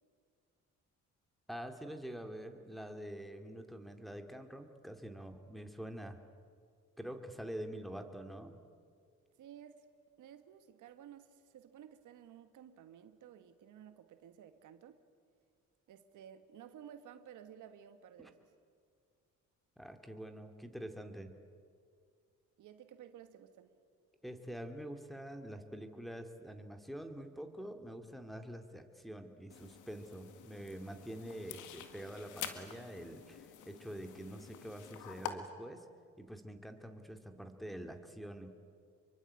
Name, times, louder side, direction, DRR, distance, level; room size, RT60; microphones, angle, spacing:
voice 1, 1.5-6.2 7.0-8.6 18.2-18.3 19.8-21.4 24.2-35.8 36.2-38.5, right 1 dB, ahead, 5 dB, 2.6 m, -46 dB
voice 2, 9.4-9.8 10.2-15.0 15.9-18.5 22.6-23.8, right 9 dB, 80° right, 10 dB, 1.6 m, -54 dB
sound 1, 29.5-35.3, left 10 dB, 85° left, 2.1 m, -48 dB
26.5 x 23.5 x 8.9 m, 2.2 s
cardioid pair, 90°, 30 cm